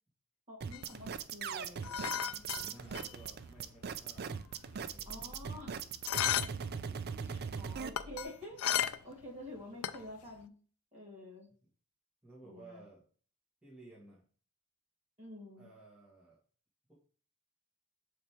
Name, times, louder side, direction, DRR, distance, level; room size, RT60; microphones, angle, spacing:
voice 1, 0.5-2.1 5.1-5.8 7.3-10.5 10.9-11.5 12.4-12.8 15.2-15.7, left 1 dB, 30° right, -4 dB, 2.2 m, -49 dB
sound 1, 0.6-7.9, right 6 dB, 45° right, 0.4 m, -40 dB
sound 2, 0.7-3.4 3.6-3.7 4.1-5.6 6.0-6.7 7.0-9.3 9.6-10.3, left 10 dB, 85° left, 0.4 m, -35 dB
voice 2, 2.1-4.4 4.9-5.3 6.9-7.4 12.2-13.0 13.6-14.2 15.6-16.4, right 2 dB, 5° right, -8 dB, 1.4 m, -56 dB
sound 3, 2.9-8.2, equal, 15° left, 1.9 m, -57 dB
6.4 x 3.4 x 4.3 m, 0.41 s
head